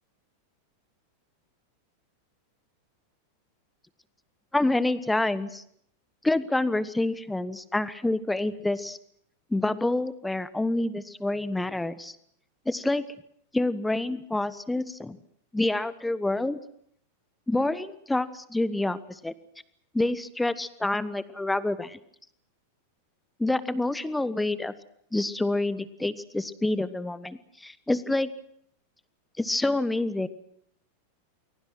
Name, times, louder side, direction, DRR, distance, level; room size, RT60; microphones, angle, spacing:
voice 1, 4.5-5.6 6.2-9.0 9.5-12.2 12.6-13.0 13.5-15.2 15.5-16.6 17.5-19.3 19.9-22.0 23.4-24.7 25.1-28.3 29.4-30.3, left 2 dB, 5° left, 16 dB, 1.2 m, -27 dB
29.5 x 22.0 x 6.3 m, 0.70 s
figure-of-eight pair, 90°, 0 cm